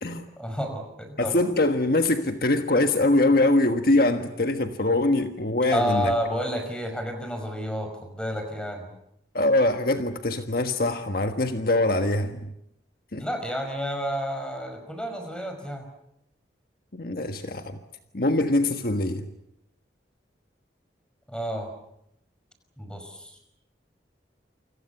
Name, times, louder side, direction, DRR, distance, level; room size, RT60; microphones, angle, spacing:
voice 1, 0.4-1.4 5.7-8.9 13.2-15.9 21.3-21.7 22.8-23.4, equal, 5° left, 5.5 m, -30 dB
voice 2, 1.2-6.1 9.3-12.5 13.1-13.2 16.9-17.8 18.1-19.3, left 2 dB, 55° left, 1.5 m, -23 dB
29.0 x 25.5 x 7.1 m
head